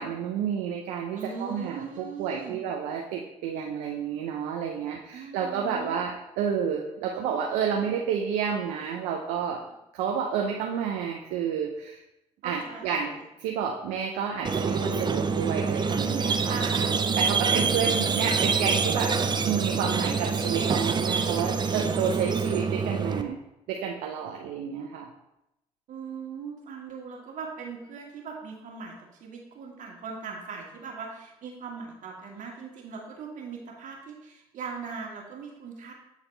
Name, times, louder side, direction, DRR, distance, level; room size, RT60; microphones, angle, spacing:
voice 1, 0.0-9.6 9.9-12.0 12.4-19.2 19.4-23.4 23.7-25.1, right 7 dB, 75° right, 1 dB, 0.6 m, -30 dB
voice 2, 1.1-2.6 5.1-6.0 12.4-13.0 16.5-17.0 17.5-18.1 25.9-28.9 29.2-35.9, right 5 dB, 60° right, -1 dB, 1.6 m, -39 dB
Squeak, 14.4-23.2, right 5 dB, 30° right, 0.5 m, -26 dB
8.2 x 4.1 x 3.3 m, 0.89 s
hypercardioid pair, 55°, 15 cm